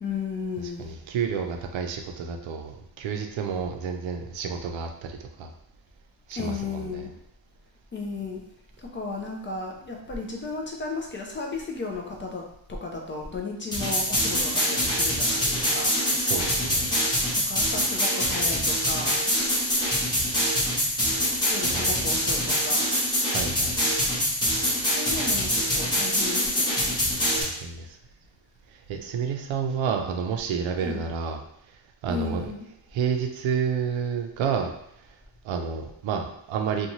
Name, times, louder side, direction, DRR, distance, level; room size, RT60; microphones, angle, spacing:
voice 1, 0.0-0.9 6.3-7.1 7.9-8.4 8.8-15.9 17.5-19.2 21.5-23.0 24.9-27.0 30.8-31.1 32.1-32.6, left 3 dB, 25° left, 0 dB, 0.4 m, -34 dB
voice 2, 0.8-5.5 6.3-7.1 16.1-16.9 21.7-22.0 23.3-23.8 27.3-27.9 28.9-31.4 32.0-32.5 32.9-34.7 35.4-36.9, right 6 dB, 75° right, 5 dB, 0.5 m, -30 dB
sound 1, 13.7-27.4, equal, 10° left, 0.8 m, -24 dB
2.6 x 2.3 x 2.9 m, 0.75 s
cardioid pair, 135°, 46 cm